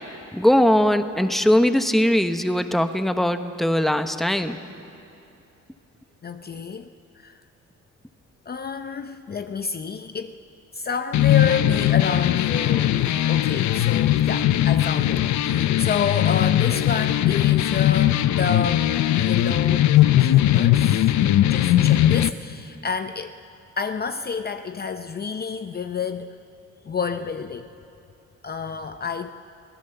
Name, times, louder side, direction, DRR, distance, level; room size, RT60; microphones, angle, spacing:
voice 1, 0.3-4.6, left 1 dB, ahead, 9 dB, 1.0 m, -20 dB
voice 2, 6.2-6.9 7.1-7.3 8.5-10.4 10.7-19.9 20.2-21.1 21.4-23.3 23.8-26.4 26.8-27.7 28.4-29.3, left 5 dB, 30° left, 8 dB, 0.7 m, -29 dB
sound 1, 11.1-22.3, left 13 dB, 70° left, 0.7 m, -19 dB
24.0 x 16.5 x 6.9 m, 2.8 s
cardioid pair, 90°, 30 cm